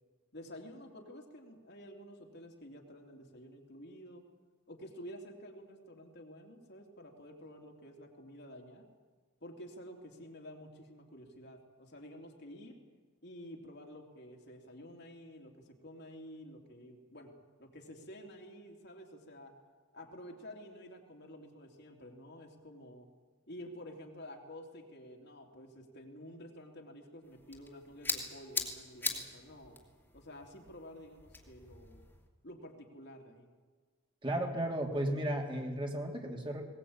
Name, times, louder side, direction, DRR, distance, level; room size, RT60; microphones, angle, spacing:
voice 1, 0.3-4.2 4.7-8.9 9.4-12.8 13.2-17.3 17.6-19.5 19.9-23.1 23.5-29.8 30.1-32.0 32.4-33.5, equal, 55° left, 1 dB, 3.0 m, -50 dB
sound 1, 27.2-32.2, left 3 dB, 10° left, 2.6 m, -41 dB
voice 2, 34.2-36.6, right 1 dB, 25° right, 1 dB, 2.8 m, -34 dB
21.0 x 19.5 x 8.8 m, 1.4 s
head